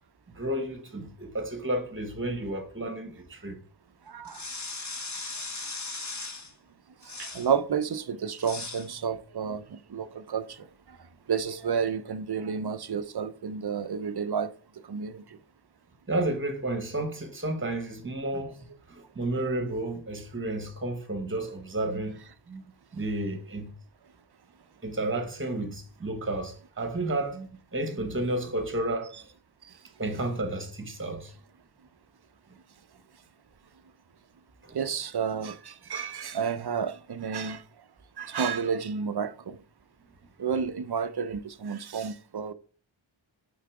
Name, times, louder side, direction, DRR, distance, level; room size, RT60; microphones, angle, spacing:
voice 1, 0.3-3.6 16.1-18.6 18.9-22.2 22.5-23.7 24.8-29.3 30.0-31.3 34.6-34.8, right 1 dB, 25° right, 1.2 m, -32 dB
voice 2, 4.1-4.4 7.2-10.7 11.3-14.5 14.9-15.2 34.7-37.6 38.2-39.6 40.4-42.5, right 6 dB, 50° right, 0.6 m, -31 dB
sound 1, 4.2-6.5 7.0-7.5 8.4-8.9, left 3 dB, 35° left, 1.1 m, -38 dB
5.7 x 4.0 x 4.8 m
wide cardioid pair, 70°, 49 cm